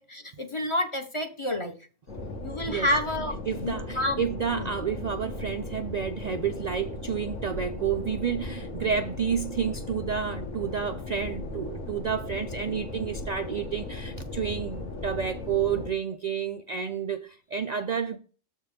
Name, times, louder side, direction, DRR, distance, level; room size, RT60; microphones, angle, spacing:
voice 1, 0.0-1.8 2.4-3.3 3.6-4.3 4.5-4.7, left 1 dB, 30° left, 0.6 m, -29 dB
sound 1, 2.1-15.9, left 2 dB, 80° left, 2.0 m, -37 dB
voice 2, 3.5-18.2, right 7 dB, 85° right, 0.3 m, -30 dB
7.2 x 4.5 x 5.1 m
omnidirectional pair, 1.3 m